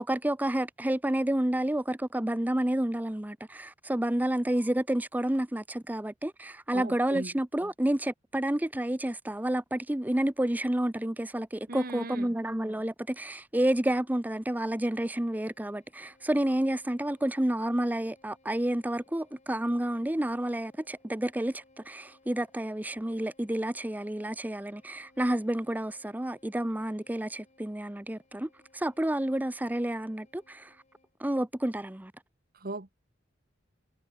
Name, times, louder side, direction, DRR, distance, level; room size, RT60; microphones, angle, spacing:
voice 1, 0.0-30.7 31.2-32.1, right 1 dB, 10° right, 0.6 m, -30 dB
voice 2, 6.7-7.3 11.7-12.3 32.5-33.0, right 2 dB, 50° right, 1.7 m, -38 dB
Bowed string instrument, 14.8-31.2, left 2 dB, 40° left, 6.6 m, -64 dB
head